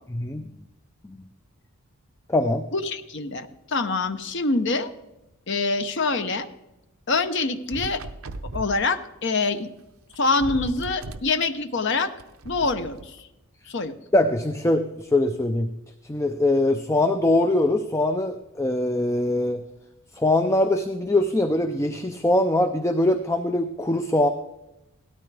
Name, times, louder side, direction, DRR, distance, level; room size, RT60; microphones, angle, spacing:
voice 1, 0.1-0.5 1.1-1.2 2.3-2.7 14.1-15.7 16.1-19.6 20.2-24.3, left 1 dB, 10° left, 7 dB, 0.4 m, -22 dB
voice 2, 2.7-4.9 5.5-6.5 7.1-8.0 8.5-9.7 10.2-12.1 12.4-13.2 13.7-13.9, left 3 dB, 50° left, 9 dB, 0.8 m, -25 dB
sound 1, 7.7-8.8 9.9-10.0 10.1-11.3 12.2-13.1, right 2 dB, 70° right, 0.7 m, -36 dB
17.0 x 13.0 x 3.4 m, 0.96 s
head